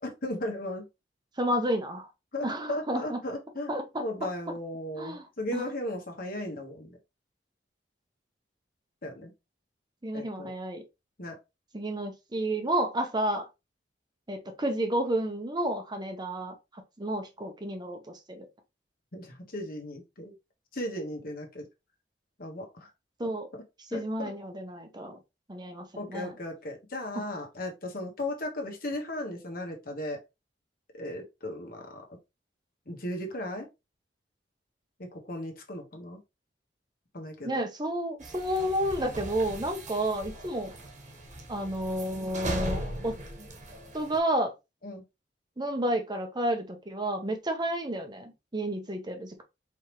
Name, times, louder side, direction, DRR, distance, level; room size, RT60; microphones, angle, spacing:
voice 1, 0.0-0.8 2.3-3.7 4.0-7.0 9.0-9.3 10.1-10.5 11.2-11.4 19.1-20.3 20.7-21.7 22.4-22.9 23.2-23.3 23.9-24.3 26.0-30.2 30.9-32.0 32.9-33.7 35.1-36.2 37.1-37.5 44.8-45.0, left 1 dB, 55° left, 1.4 m, -36 dB
voice 2, 1.4-2.1 2.4-3.2 3.7-4.0 5.0-5.3 5.5-5.7 10.0-10.8 11.7-13.5 14.3-18.5 23.2-23.5 23.9-25.2 25.5-26.3 37.4-40.7 41.5-43.1 43.9-44.5 45.6-49.4, right 1 dB, 25° right, 0.8 m, -31 dB
sound 1, 38.2-44.2, right 1 dB, 45° right, 1.3 m, -38 dB
4.8 x 3.5 x 3.1 m
head